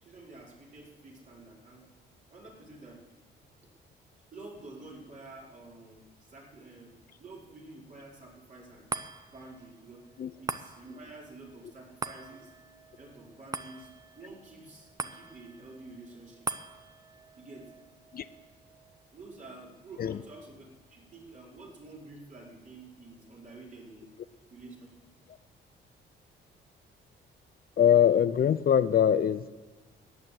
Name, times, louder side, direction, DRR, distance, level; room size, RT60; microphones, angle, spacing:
voice 1, 0.0-1.8 2.3-3.0 4.3-8.9 9.3-10.0 10.4-12.5 13.0-13.9 14.2-16.5 17.3-17.7 19.1-24.1 24.5-24.9, right 2 dB, 40° right, -3 dB, 4.5 m, -49 dB
sound 1, 8.9-21.5 21.9-22.0, right 3 dB, 20° right, 0.7 m, -43 dB
voice 2, 27.8-29.5, left 9 dB, 50° left, 13 dB, 0.6 m, -23 dB
14.0 x 9.0 x 7.6 m, 1.3 s
cardioid pair, 90°, 20 cm